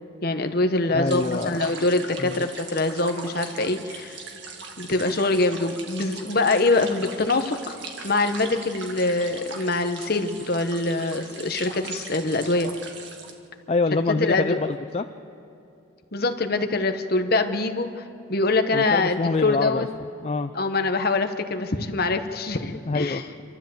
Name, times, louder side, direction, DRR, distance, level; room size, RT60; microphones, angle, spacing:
voice 1, 0.2-4.2 4.8-7.8 8.0-12.7 13.9-14.6 16.1-18.0 18.3-19.9 20.5-23.2, left 3 dB, 50° left, 7 dB, 1.1 m, -24 dB
voice 2, 0.9-1.7 2.2-2.5 13.7-15.1 18.7-20.5 22.9-23.4, left 3 dB, 30° left, 9 dB, 0.4 m, -26 dB
sound 1, 1.1-13.3, right 4 dB, 60° right, 1.8 m, -40 dB
26.5 x 13.0 x 7.7 m, 2.7 s
head